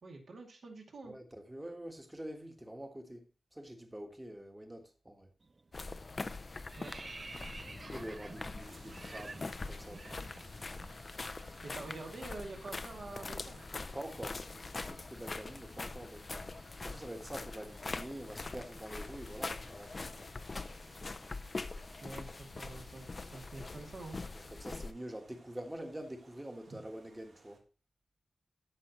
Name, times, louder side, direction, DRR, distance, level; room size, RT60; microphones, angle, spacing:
voice 1, 0.0-1.1 6.8-6.9 11.6-13.6 22.0-24.2, right 2 dB, 60° right, 2.4 m, -47 dB
voice 2, 1.0-5.3 7.9-10.2 13.9-16.5 16.8-20.2 24.3-27.6, right 1 dB, 10° right, 1.4 m, -46 dB
sound 1, 5.4-5.7 6.0-11.0 11.2-11.4 11.7-15.8, right 3 dB, 30° right, 0.4 m, -52 dB
sound 2, 5.7-24.9, left 3 dB, 35° left, 0.4 m, -43 dB
sound 3, 8.6-27.6, right 3 dB, 85° right, 1.8 m, -62 dB
13.5 x 5.7 x 3.0 m
wide cardioid pair, 170°, 0 cm